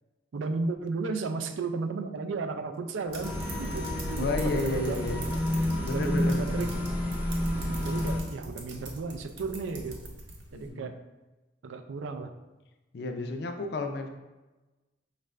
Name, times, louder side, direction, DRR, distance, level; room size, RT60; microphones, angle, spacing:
voice 1, 0.3-5.4 5.9-6.7 7.4-10.0 10.5-10.9 11.6-12.3, right 4 dB, 80° right, 7 dB, 0.4 m, -34 dB
sound 1, 3.1-10.7, right 1 dB, 60° right, 0.8 m, -43 dB
sound 2, 3.2-8.2, left 1 dB, 5° right, 0.5 m, -30 dB
voice 2, 4.2-6.6 10.5-10.9 12.9-14.1, left 2 dB, 55° left, 5 dB, 0.4 m, -32 dB
5.4 x 2.5 x 3.2 m, 1.1 s
head